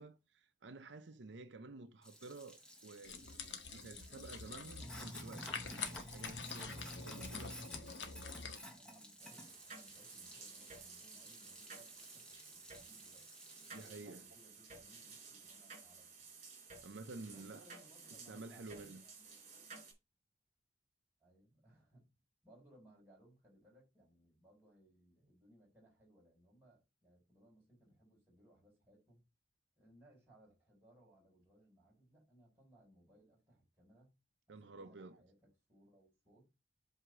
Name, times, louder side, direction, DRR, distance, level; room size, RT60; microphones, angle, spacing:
voice 1, 0.0-3.2 3.7-7.6 13.7-14.3 16.8-17.7 18.3-19.0 34.5-35.2, right 3 dB, 75° right, 0.7 m, -51 dB
Sink (filling or washing), 2.0-14.0, equal, 5° left, 1.1 m, -53 dB
sound 1, 3.0-8.6, left 5 dB, 75° left, 1.0 m, -46 dB
voice 2, 8.7-13.3 13.8-16.3 17.2-19.5 21.2-22.1 22.4-29.2 29.8-34.1 34.5-36.5, right 1 dB, 10° right, 4.3 m, -66 dB
sound 2, 9.2-19.9, right 4 dB, 40° right, 3.9 m, -55 dB
7.9 x 2.8 x 6.1 m
head